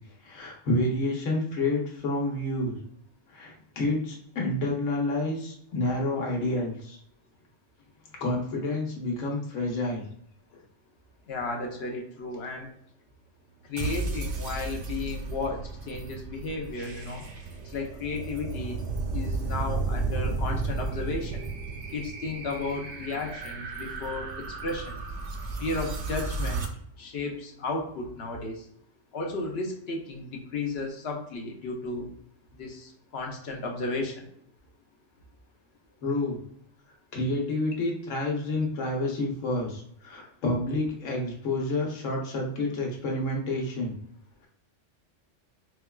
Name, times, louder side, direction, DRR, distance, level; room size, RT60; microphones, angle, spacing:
voice 1, 0.2-2.8 3.3-7.0 8.2-10.0 22.7-22.8 36.0-36.4 37.1-44.0, left 2 dB, 85° left, -1 dB, 1.3 m, -29 dB
voice 2, 11.3-12.7 13.7-17.2 17.6-18.8 19.1-21.4 21.9-25.0 25.6-26.7 27.0-28.6 29.1-32.1 32.6-34.1, left 3 dB, 60° left, 1 dB, 0.8 m, -34 dB
sound 1, 13.8-26.7, right 3 dB, 70° right, 0.8 m, -33 dB
4.5 x 2.2 x 2.2 m, 0.68 s
omnidirectional pair, 1.3 m